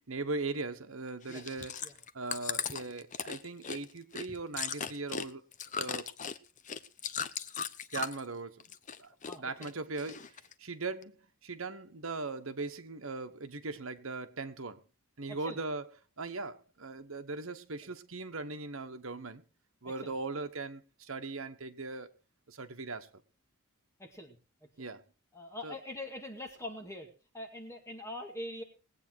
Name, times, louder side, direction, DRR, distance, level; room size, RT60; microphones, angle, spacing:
voice 1, 0.1-1.8 2.1-5.4 5.7-6.1 7.9-8.7 9.0-14.8 15.2-15.8 16.2-19.4 19.8-22.1 22.5-23.1 24.8-25.0 25.6-25.7, right 3 dB, 70° right, 1.3 m, -39 dB
Chewing mastication, 1.2-8.3 8.6-9.4 9.6-10.5 11.0-11.1, left 7 dB, 35° left, 0.7 m, -38 dB
voice 2, 9.2-9.7 15.3-15.6 20.0-20.1 24.0-24.4 24.8-24.9 25.3-28.6, left 1 dB, 15° left, 2.1 m, -43 dB
20.0 x 8.6 x 4.6 m
head